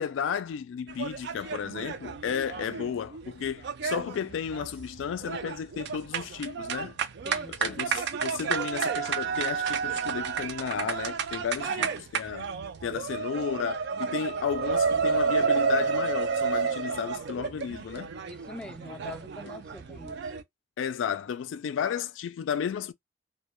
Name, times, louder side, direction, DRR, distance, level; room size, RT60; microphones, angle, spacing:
voice 1, 0.0-7.0 7.5-12.5 12.8-18.1 20.8-22.9, left 7 dB, 90° left, 0.3 m, -33 dB
sound 1, 0.9-20.4, right 6 dB, 60° right, 0.4 m, -31 dB
voice 2, 7.2-7.9 11.6-12.1 18.3-20.3, left 1 dB, 5° left, 0.3 m, -44 dB
2.2 x 2.1 x 2.9 m
head